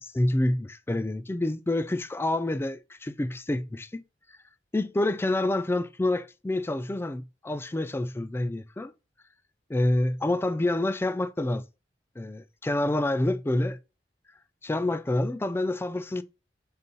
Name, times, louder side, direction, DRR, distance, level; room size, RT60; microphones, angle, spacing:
voice 1, 0.0-4.0 4.7-8.9 9.7-11.6 12.2-13.8 14.6-16.2, left 1 dB, 15° left, 0.3 m, -27 dB
5.3 x 4.1 x 5.4 m
head